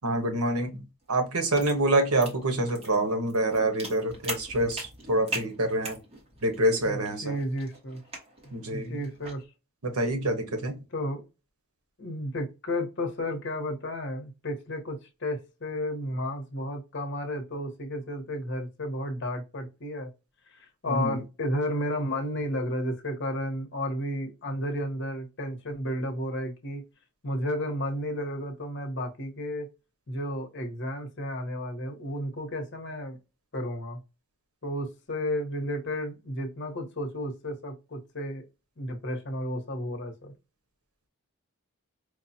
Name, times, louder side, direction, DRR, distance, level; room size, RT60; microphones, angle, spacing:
voice 1, 0.0-6.0 6.4-7.4 8.5-9.0 9.8-10.8 20.9-21.2, right 1 dB, 85° right, 1.1 m, -26 dB
sound 1, 1.0-9.4, right 1 dB, 25° right, 1.3 m, -41 dB
voice 2, 6.8-8.0 8.4-9.4 10.9-11.2 12.0-20.1 20.5-26.8 27.2-29.7 30.1-33.2 33.5-34.0 34.6-38.4 38.8-40.3, left 1 dB, 55° left, 1.0 m, -32 dB
4.7 x 2.3 x 2.7 m
head